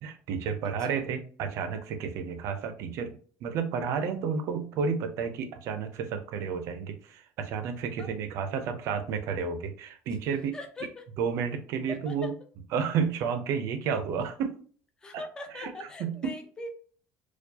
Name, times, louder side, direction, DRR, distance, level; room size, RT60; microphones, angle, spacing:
voice 1, 0.0-10.6 11.2-12.3 12.7-14.5 15.1-15.2 15.6-15.7 16.0-16.3, right 6 dB, 50° right, 8 dB, 0.5 m, -31 dB
voice 2, 0.6-1.0 8.0-8.1 10.5-11.1 11.9-12.3 15.0-16.7, left 1 dB, 15° left, 5 dB, 0.5 m, -41 dB
4.4 x 2.3 x 2.7 m, 0.44 s
cardioid pair, 180°, 6 cm